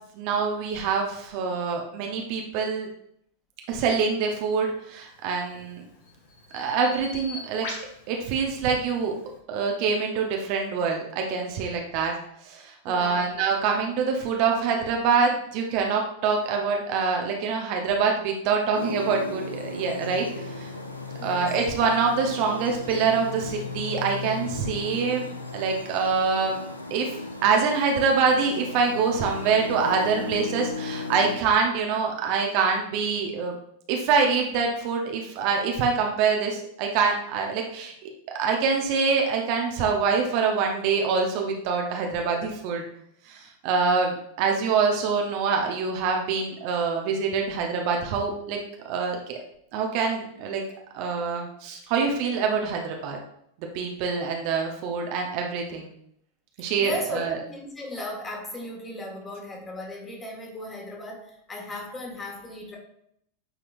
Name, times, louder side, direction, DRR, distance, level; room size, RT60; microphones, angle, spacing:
voice 1, 0.2-2.9 3.7-5.8 6.5-7.7 8.1-9.1 9.5-12.1 12.4-20.7 21.2-26.6 26.9-27.1 27.4-33.5 33.9-37.9 38.4-42.8 43.3-48.6 48.8-49.4 49.7-50.6 50.9-53.2 53.7-55.9 56.6-57.4, right 5 dB, 45° right, 1 dB, 1.0 m, -25 dB
Bird vocalization bird call bird song, 5.2-9.4, left 3 dB, 55° left, 1.9 m, -42 dB
voice 2, 12.9-13.3 15.8-15.9 21.2-21.5 56.8-62.8, left 1 dB, 20° left, 0 dB, 2.0 m, -37 dB
sound 1, 18.7-31.4, left 3 dB, 80° left, 0.8 m, -35 dB
8.9 x 4.8 x 2.6 m, 0.72 s
figure-of-eight pair, 90°, 0 cm